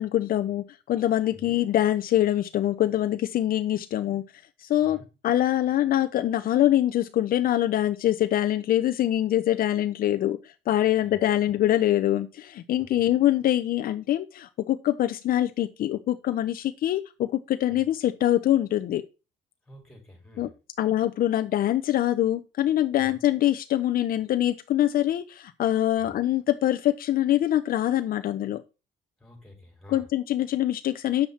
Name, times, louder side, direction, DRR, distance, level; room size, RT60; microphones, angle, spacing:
voice 1, 0.0-4.2 4.6-5.0 5.2-10.4 10.7-19.0 20.4-20.5 20.8-28.6 29.9-31.3, left 12 dB, 60° left, 8 dB, 0.7 m, -24 dB
voice 2, 12.8-13.1 17.7-17.9 19.7-20.5 23.0-23.2 26.0-26.2 29.2-30.1, left 1 dB, ahead, 1 dB, 5.4 m, -49 dB
8.8 x 7.3 x 4.3 m, 0.30 s
cardioid pair, 110°, 17 cm